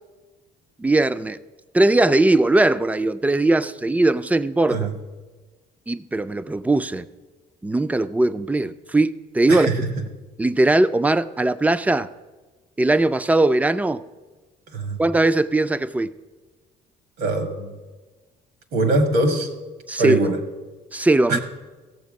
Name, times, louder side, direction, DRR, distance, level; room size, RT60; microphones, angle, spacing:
voice 1, 0.8-1.4 1.7-4.9 5.9-7.1 7.6-9.7 10.4-12.1 12.8-14.0 15.0-16.1 19.9-20.2 20.9-21.4, right 2 dB, 10° right, 0.4 m, -19 dB
voice 2, 9.5-9.9 14.7-15.0 17.2-17.7 18.7-19.5 20.0-20.4 21.3-21.4, right 2 dB, 75° right, 1.7 m, -22 dB
15.5 x 7.0 x 5.2 m
cardioid pair, 110°, 17 cm